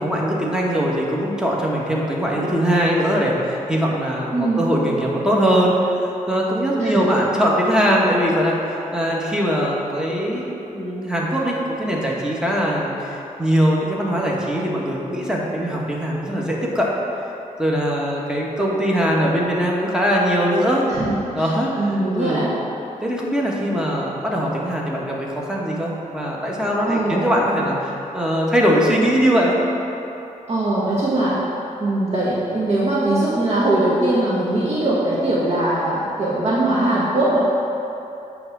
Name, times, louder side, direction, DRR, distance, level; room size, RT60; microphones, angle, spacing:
voice 1, 0.0-16.9 17.6-20.8 21.3-22.4 23.0-29.5, equal, 5° right, -3 dB, 1.3 m, -21 dB
voice 2, 4.3-4.6 6.8-7.0 20.9-21.5 21.8-22.5 26.8-27.2 30.5-31.4 31.8-37.4, right 1 dB, 50° right, -8 dB, 1.4 m, -21 dB
8.5 x 3.5 x 6.1 m, 2.9 s
cardioid pair, 75°, 14 cm